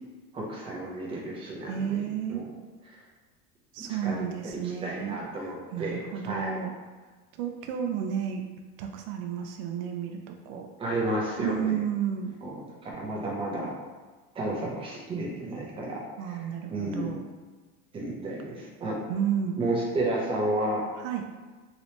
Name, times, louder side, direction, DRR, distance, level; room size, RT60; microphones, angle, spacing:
voice 1, 0.3-2.0 2.3-2.5 2.9-3.0 4.0-4.3 4.5-6.6 10.8-11.8 12.4-13.7 14.3-16.4 16.7-17.1 17.9-19.0 19.6-20.8, right 1 dB, 20° right, -3 dB, 0.6 m, -32 dB
voice 2, 1.7-2.4 3.7-6.7 7.4-8.4 8.8-10.7 11.4-12.3 16.2-17.2 19.1-19.6 21.0-21.3, right 8 dB, 75° right, 4 dB, 0.5 m, -32 dB
3.2 x 2.9 x 2.8 m, 1.3 s
supercardioid pair, 145°, 29 cm